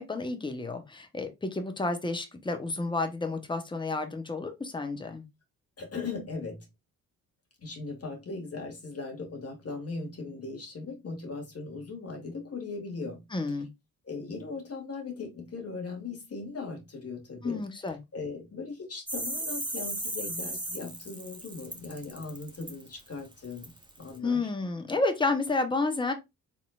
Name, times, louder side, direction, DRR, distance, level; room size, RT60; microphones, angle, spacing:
voice 1, 0.0-5.2 13.3-13.7 17.4-18.0 24.2-26.1, left 3 dB, 10° left, 1.0 m, -30 dB
voice 2, 5.8-6.7 7.6-13.3 14.0-17.6 18.1-24.5, left 4 dB, 35° left, 2.1 m, -39 dB
sound 1, 19.1-24.2, right 1 dB, 10° right, 1.4 m, -36 dB
4.8 x 3.6 x 2.4 m
figure-of-eight pair, 45°, 44 cm